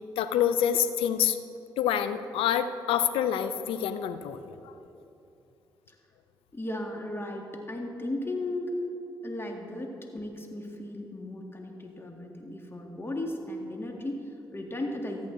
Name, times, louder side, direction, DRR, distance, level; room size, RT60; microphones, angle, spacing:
voice 1, 0.0-1.4 1.8-4.7, left 9 dB, 85° left, 11 dB, 0.5 m, -27 dB
voice 2, 6.5-8.7 9.2-15.3, left 1 dB, 25° left, 2 dB, 1.9 m, -36 dB
14.0 x 8.3 x 3.9 m, 2.8 s
supercardioid pair, 55°, 9 cm